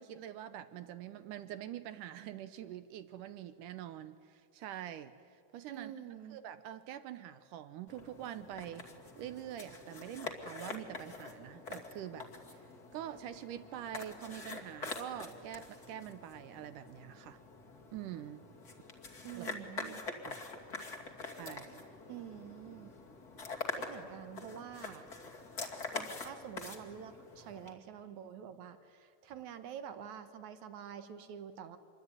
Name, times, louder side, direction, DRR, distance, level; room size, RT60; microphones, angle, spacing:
voice 1, 0.0-5.1 5.5-5.9 6.3-8.9 9.2-17.4 17.9-18.4 19.4-19.5 19.8-20.5 21.2-21.8, right 11 dB, 80° right, 12 dB, 1.9 m, -45 dB
voice 2, 5.7-6.4 19.2-20.0 22.1-22.9 23.7-25.1 25.9-31.8, right 9 dB, 60° right, 10 dB, 2.2 m, -47 dB
sound 1, 7.9-27.7, left 3 dB, 30° left, 2.1 m, -45 dB
26.5 x 22.5 x 9.7 m, 2.3 s
omnidirectional pair, 4.6 m